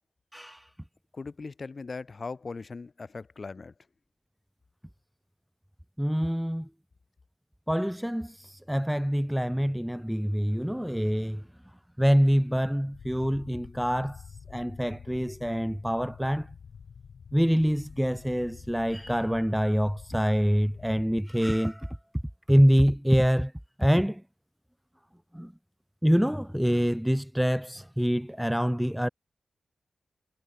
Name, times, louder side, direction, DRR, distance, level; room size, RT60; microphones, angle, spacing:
voice 1, 0.3-0.6 6.0-6.7 7.7-11.4 12.0-14.2 14.5-16.5 17.3-22.0 22.5-23.5 23.8-24.2 25.3-25.5 26.0-29.1, equal, ahead, 0.7 m, -25 dB
voice 2, 1.1-3.7, left 4 dB, 45° left, 1.7 m, -39 dB
Large-fire-drone, 12.9-21.2, left 6 dB, 80° left, 2.8 m, -47 dB
wide cardioid pair, 125°, 0 cm